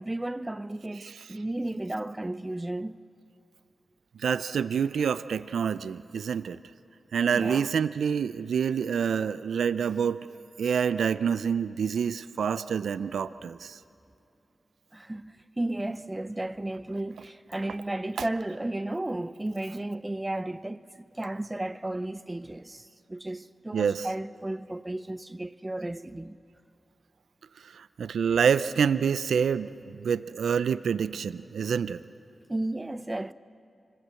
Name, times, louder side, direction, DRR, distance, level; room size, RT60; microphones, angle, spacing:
voice 1, 0.0-3.0 7.3-7.7 14.9-26.4 32.5-33.3, right 1 dB, 20° right, 0.7 m, -34 dB
voice 2, 4.2-6.6 7.1-10.3 10.6-13.8 23.7-24.1 27.7-32.0, right 7 dB, 85° right, 0.5 m, -27 dB
25.5 x 21.0 x 7.6 m
cardioid pair, 45°, 0 cm